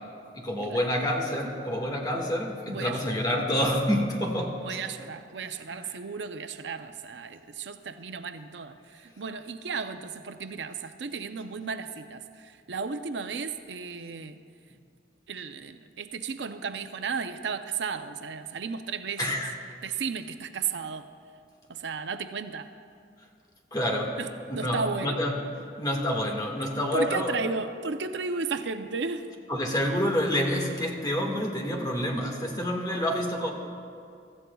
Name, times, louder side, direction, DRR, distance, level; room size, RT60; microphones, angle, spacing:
voice 1, 0.3-4.8 5.7-5.9 19.2-19.5 23.7-24.2 24.5-25.4 25.8-27.3 29.5-33.5, equal, 25° left, 0 dB, 1.7 m, -28 dB
voice 2, 2.7-3.2 4.6-14.4 15.3-19.4 19.8-21.1 21.7-22.7 24.2-25.2 26.6-29.3, right 5 dB, 80° right, 8 dB, 0.6 m, -34 dB
24.0 x 14.0 x 2.3 m, 2.3 s
head